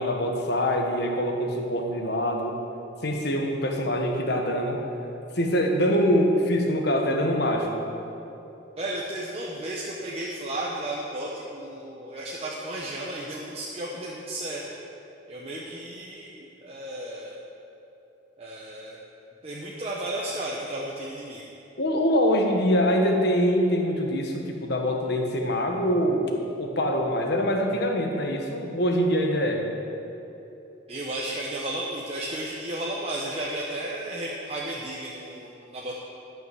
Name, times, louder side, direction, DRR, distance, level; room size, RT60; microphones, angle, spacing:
voice 1, 0.0-2.6 3.0-4.8 5.3-7.8 21.8-29.6, equal, 60° left, 2 dB, 1.4 m, -24 dB
voice 2, 8.8-14.7 15.3-17.4 18.4-19.0 19.4-21.5 30.9-35.9, right 1 dB, 30° right, -4 dB, 1.0 m, -33 dB
12.5 x 5.9 x 7.6 m, 3.0 s
head